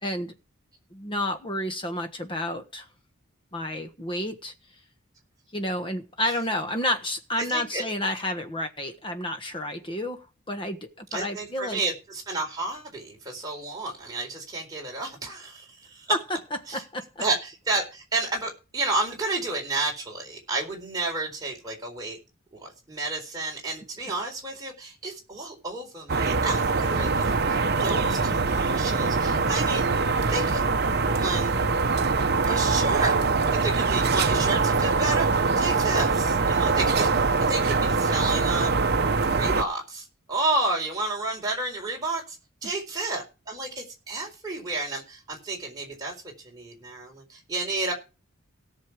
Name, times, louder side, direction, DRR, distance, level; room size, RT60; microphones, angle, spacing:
voice 1, 0.0-0.3 0.9-2.9 3.5-4.5 5.5-11.8 16.1-16.2 16.7-17.2 30.1-30.5, left 1 dB, 25° left, 1.3 m, -30 dB
voice 2, 7.4-7.8 11.1-16.1 16.7-16.8 17.2-22.2 22.5-29.9 30.3-30.6 31.0-31.6 32.5-33.2 33.5-38.7 39.3-42.4 42.6-47.9, right 2 dB, 20° right, 4.2 m, -31 dB
sound 1, 26.1-39.6, right 4 dB, 50° right, 0.8 m, -23 dB
17.5 x 6.6 x 4.9 m
head